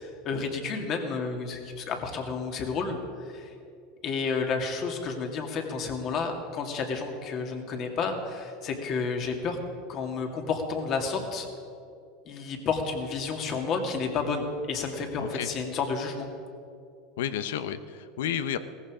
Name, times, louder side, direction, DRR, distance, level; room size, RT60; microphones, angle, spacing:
voice 1, 0.0-3.5 4.0-9.6 9.9-11.5 12.3-16.3, left 4 dB, 45° left, 3 dB, 2.3 m, -31 dB
voice 2, 17.2-18.6, left 9 dB, 85° left, 12 dB, 0.8 m, -31 dB
17.0 x 14.5 x 5.0 m, 2.5 s
supercardioid pair, 110°, 0 cm